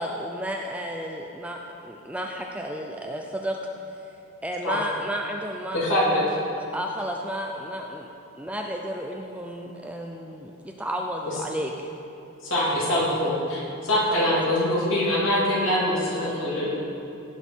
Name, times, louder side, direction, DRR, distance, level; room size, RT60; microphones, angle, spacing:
voice 1, 0.0-3.6 4.4-8.1 8.4-11.9 13.9-14.2, equal, 5° right, 1 dB, 0.4 m, -32 dB
voice 2, 5.7-6.2 12.4-16.7, left 1 dB, 60° left, -7 dB, 2.9 m, -23 dB
16.5 x 6.4 x 4.5 m, 2.7 s
head